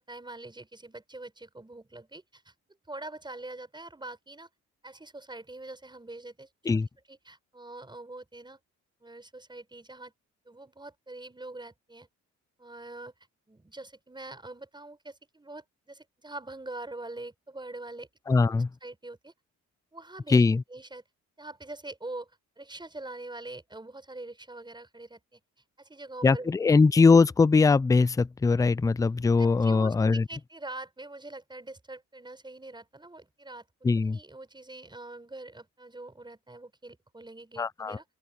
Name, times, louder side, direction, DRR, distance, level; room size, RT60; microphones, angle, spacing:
voice 1, 0.0-2.5 2.9-4.5 4.8-6.8 7.1-8.6 9.0-10.1 10.5-12.1 12.6-13.1 13.5-18.1 18.4-18.5 18.8-19.3 19.9-20.4 20.7-21.0 21.4-22.3 22.6-25.4 25.8-26.5 29.4-33.7 34.0-38.0, right 2 dB, 15° right, 5.9 m, -44 dB
voice 2, 18.3-18.7 20.3-20.6 26.2-30.3 33.8-34.2 37.6-38.0, left 4 dB, 10° left, 0.4 m, -21 dB
open air
cardioid pair, 90°, 30 cm